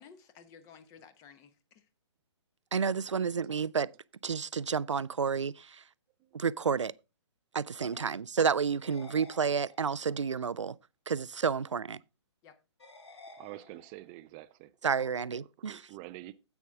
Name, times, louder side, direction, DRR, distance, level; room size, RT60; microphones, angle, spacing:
voice 1, 0.0-1.9 7.8-8.0 12.4-12.6, left 7 dB, 20° left, 1.0 m, -54 dB
voice 2, 2.7-3.9 4.2-5.9 6.3-6.9 7.5-10.8 11.1-12.0 14.8-15.9, right 6 dB, 75° right, 0.5 m, -30 dB
sound 1, 8.8-10.2 12.8-14.2, left 3 dB, 65° left, 3.0 m, -53 dB
voice 3, 13.4-14.9 15.6-16.3, right 17 dB, 20° right, 0.5 m, -47 dB
10.5 x 8.3 x 3.6 m
figure-of-eight pair, 130°, 16 cm